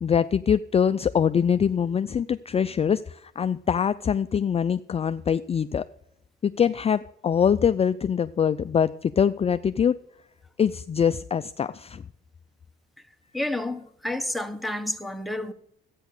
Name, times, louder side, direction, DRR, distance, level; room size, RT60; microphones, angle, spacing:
voice 1, 0.0-5.9 6.4-10.0 10.6-12.0, left 7 dB, 30° left, 0.4 m, -23 dB
voice 2, 13.3-15.5, left 1 dB, ahead, 1.3 m, -30 dB
13.0 x 9.1 x 6.6 m
cardioid pair, 90°, 20 cm